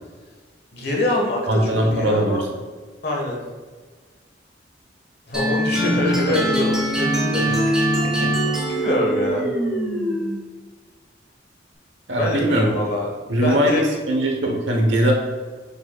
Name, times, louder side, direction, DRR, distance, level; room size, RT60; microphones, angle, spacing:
voice 1, 0.7-2.4 3.0-3.4 5.3-7.8 8.7-9.5 12.2-13.8, left 2 dB, 60° left, 0 dB, 1.5 m, -25 dB
voice 2, 1.5-2.4 5.8-5.9 6.3-6.4 12.1-12.8 13.3-15.1, right 1 dB, 75° right, 1 dB, 1.1 m, -20 dB
sound 1, 5.3-10.4, right 1 dB, 5° right, 1.3 m, -22 dB
6.8 x 6.8 x 2.4 m, 1.4 s
head